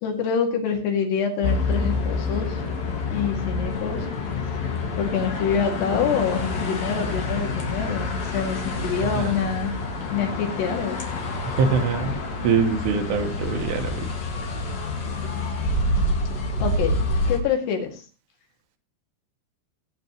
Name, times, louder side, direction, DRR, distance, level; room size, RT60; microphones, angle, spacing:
voice 1, 0.0-2.6 3.1-4.0 5.0-9.7 10.1-11.0 16.6-16.9 17.3-18.0, left 6 dB, 90° left, 2 dB, 4.3 m, -26 dB
sound 1, 1.4-17.4, left 2 dB, 50° left, 2.7 m, -27 dB
voice 2, 11.6-14.2, right 5 dB, 90° right, 5 dB, 3.5 m, -24 dB
17.5 x 8.5 x 3.1 m, 0.34 s
omnidirectional pair, 4.7 m